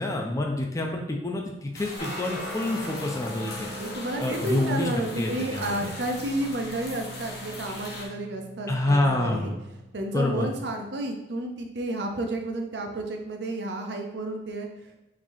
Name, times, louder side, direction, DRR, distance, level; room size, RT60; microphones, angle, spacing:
voice 1, 0.0-3.7 4.2-4.9 5.2-5.9 8.7-9.5 10.1-10.5, left 1 dB, 20° left, 1 dB, 0.4 m, -27 dB
sound 1, 1.7-8.1, left 2 dB, 65° left, 0.8 m, -40 dB
sound 2, 2.0-10.9, equal, 85° left, 1.4 m, -41 dB
voice 2, 3.8-9.5 9.9-14.7, right 1 dB, 70° right, 3 dB, 0.6 m, -31 dB
3.9 x 3.0 x 2.6 m, 0.98 s
head